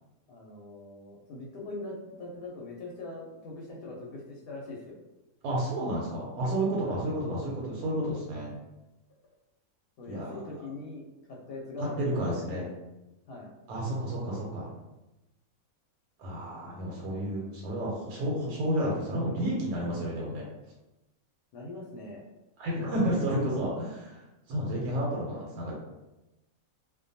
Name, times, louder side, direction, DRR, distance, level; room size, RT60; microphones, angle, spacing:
voice 1, 0.3-5.0 6.8-7.0 10.0-11.0 11.3-12.2 12.5-12.7 13.3-13.5 21.5-22.2, left 2 dB, 85° left, -3 dB, 1.1 m, -42 dB
voice 2, 5.4-8.5 10.1-10.4 11.8-12.7 13.7-14.7 16.2-20.4 22.6-24.2 24.5-25.8, right 1 dB, 90° right, -3 dB, 1.1 m, -31 dB
2.5 x 2.1 x 2.6 m, 1.0 s
omnidirectional pair, 1.5 m